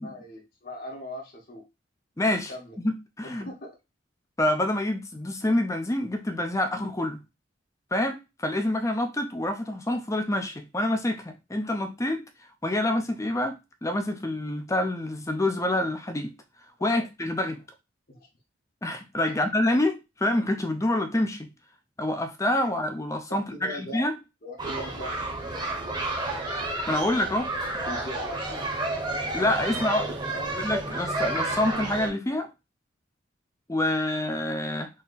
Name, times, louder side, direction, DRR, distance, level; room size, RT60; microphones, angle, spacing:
voice 1, 0.0-1.6 2.5-2.7 3.2-3.7 16.8-17.0 18.1-18.3 19.2-19.5 23.3-24.0 24.4-25.1 27.9-28.6 30.3-30.6, left 1 dB, 50° left, 1.2 m, -39 dB
voice 2, 2.2-2.5 2.8-3.5 4.4-7.2 7.9-12.2 12.6-16.3 16.8-17.6 18.8-21.5 22.0-24.1 26.9-27.5 29.3-30.1 30.5-32.5 33.7-34.9, left 1 dB, 15° left, 0.5 m, -27 dB
sound 1, 24.6-32.1, right 2 dB, 20° right, 0.9 m, -31 dB
3.8 x 2.8 x 4.1 m
head